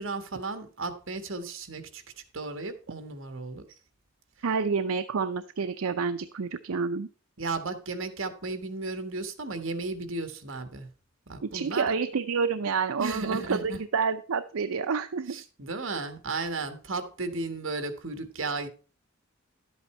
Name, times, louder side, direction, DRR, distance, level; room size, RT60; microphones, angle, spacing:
voice 1, 0.0-2.0 2.3-3.7 7.4-10.9 11.3-11.9 13.0-13.8 15.3-18.7, right 3 dB, 60° right, 1.5 m, -34 dB
voice 2, 4.4-7.1 11.4-15.4, right 5 dB, 75° right, 0.5 m, -28 dB
11.5 x 8.1 x 4.3 m
head